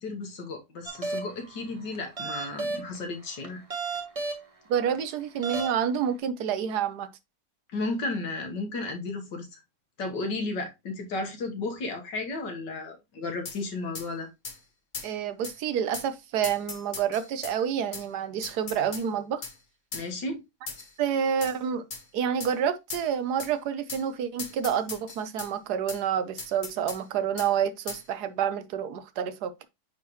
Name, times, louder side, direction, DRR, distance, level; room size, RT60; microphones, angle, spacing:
voice 1, 0.0-3.6 7.7-9.6 10.0-14.3 19.9-20.4, left 2 dB, 85° left, 2.0 m, -33 dB
sound 1, 0.9-1.5 1.9-3.0 3.4-4.4 4.9-5.0 5.4-6.0, right 3 dB, 25° right, 1.0 m, -33 dB
voice 2, 4.7-7.1 15.0-19.4 21.0-21.8 22.1-29.7, right 8 dB, 70° right, 1.2 m, -28 dB
sound 2, 13.4-13.6 13.9-14.1 14.4-14.6 14.9-15.1 15.4-15.6 15.9-16.1 16.4-17.6 17.9-18.1 18.4-19.1 19.4-19.6 19.9-20.1 20.7-20.9 21.4-21.6 21.9-22.0 22.4-22.5 22.9-23.1 23.4-23.5 23.9-24.0 24.4-25.5 25.9-26.0 26.4-27.0 27.4-27.5 27.9-28.0, left 4 dB, 35° left, 1.0 m, -38 dB
9.2 x 3.7 x 3.0 m
omnidirectional pair, 1.8 m